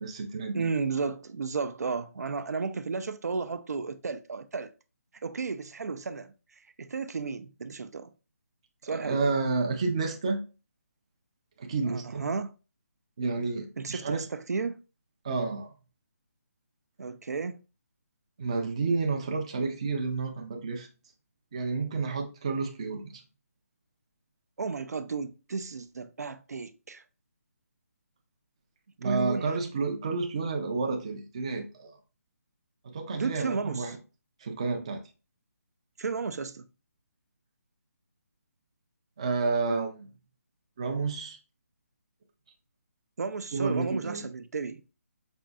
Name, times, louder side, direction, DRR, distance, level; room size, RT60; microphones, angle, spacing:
voice 1, 0.0-0.6 8.9-10.4 11.6-12.3 13.2-14.3 15.2-15.7 18.4-20.9 21.5-23.1 29.0-31.9 32.8-34.0 34.4-35.0 39.2-40.1 40.8-41.4 43.5-44.3, right 4 dB, 20° right, 0.4 m, -30 dB
voice 2, 0.5-4.7 5.2-6.3 6.8-8.1 8.8-9.3 11.9-12.5 13.8-14.8 17.0-17.6 24.6-27.0 29.0-29.5 33.1-33.9 36.0-36.6 43.2-44.8, right 4 dB, 85° right, 0.4 m, -33 dB
5.1 x 2.6 x 2.2 m
hypercardioid pair, 175°, 9 cm